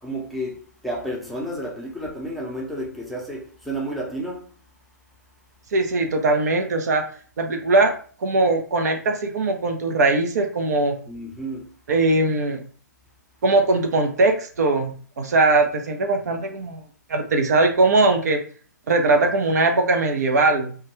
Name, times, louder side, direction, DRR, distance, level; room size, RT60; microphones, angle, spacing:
voice 1, 0.0-4.5 11.1-11.7, right 1 dB, ahead, 0.6 m, -31 dB
voice 2, 5.7-7.0 7.4-7.9 8.2-11.0 11.9-12.6 13.4-16.8 17.1-18.4 18.9-20.8, right 2 dB, 65° right, 0.5 m, -20 dB
2.2 x 2.2 x 3.0 m
hypercardioid pair, 130°, 10 cm